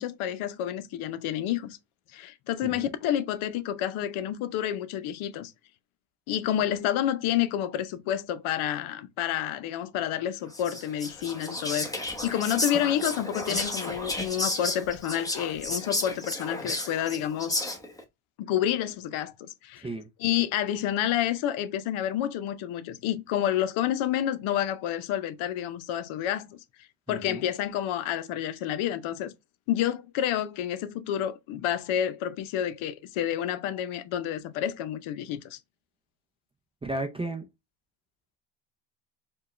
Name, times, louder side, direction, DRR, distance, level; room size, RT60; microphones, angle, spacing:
voice 1, 0.0-1.8 2.1-5.5 6.3-11.9 12.2-17.6 18.4-19.9 20.2-26.6 27.1-29.3 29.7-35.6, left 11 dB, 75° left, 0.7 m, -29 dB
Whispering, 10.5-18.0, left 1 dB, 5° left, 0.8 m, -32 dB
voice 2, 27.1-27.4 36.8-37.5, right 2 dB, 10° right, 0.4 m, -34 dB
4.6 x 2.3 x 3.0 m
cardioid pair, 110°, 49 cm